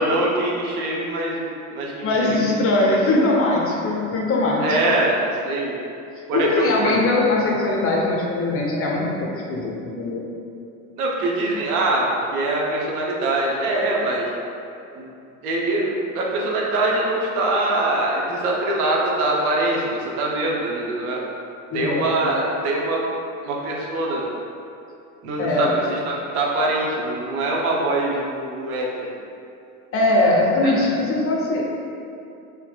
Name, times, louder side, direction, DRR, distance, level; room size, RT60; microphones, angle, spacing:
voice 1, 0.0-3.0 4.6-5.8 6.3-6.9 11.0-14.3 15.0-15.1 15.4-21.2 21.7-23.0 23.4-24.3 25.2-29.1 30.6-30.7, right 2 dB, 90° right, -2 dB, 0.7 m, -23 dB
voice 2, 2.0-4.7 6.3-10.3 21.7-22.3 25.4-25.7 29.9-31.6, left 2 dB, 30° left, -2 dB, 0.6 m, -21 dB
4.0 x 2.7 x 2.2 m, 2.6 s
supercardioid pair, 95°, 43 cm